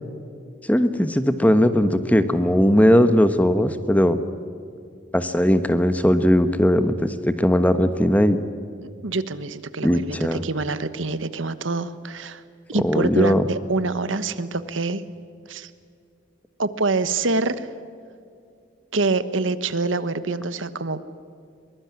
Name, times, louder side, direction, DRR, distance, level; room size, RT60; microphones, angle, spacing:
voice 1, 0.7-4.2 5.1-8.4 9.8-10.4 12.8-13.4, equal, 10° left, 10 dB, 1.2 m, -18 dB
voice 2, 9.0-12.4 12.7-15.0 15.5-15.7 16.6-17.7 18.9-21.0, right 3 dB, 85° right, 13 dB, 1.3 m, -25 dB
23.0 x 21.5 x 9.7 m, 2.4 s
head